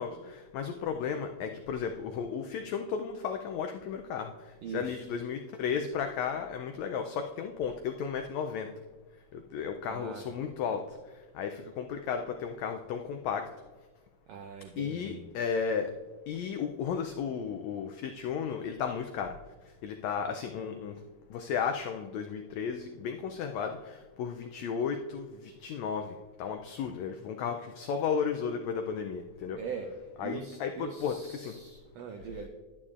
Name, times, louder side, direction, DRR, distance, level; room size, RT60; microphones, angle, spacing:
voice 1, 0.0-8.7 9.3-11.0 11.3-13.4 14.8-15.9 16.3-19.3 19.8-20.9 21.3-29.6 30.2-31.6, left 6 dB, 90° left, 5 dB, 1.5 m, -34 dB
voice 2, 4.6-5.1 9.8-10.3 14.3-15.3 29.6-29.9 30.2-32.5, right 6 dB, 90° right, 4 dB, 1.5 m, -41 dB
11.0 x 9.9 x 2.4 m, 1.3 s
omnidirectional pair, 3.7 m